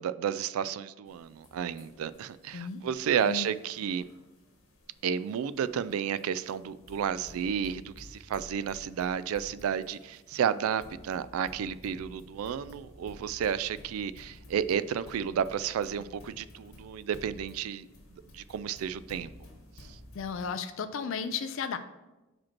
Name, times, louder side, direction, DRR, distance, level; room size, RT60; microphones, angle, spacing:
voice 1, 0.0-4.0 5.0-17.9 18.3-19.3, right 8 dB, 90° right, 0.3 m, -32 dB
sound 1, 1.1-20.6, left 1 dB, 90° left, 1.5 m, -53 dB
voice 2, 20.1-21.8, left 6 dB, 70° left, 0.4 m, -34 dB
5.1 x 4.4 x 5.8 m
head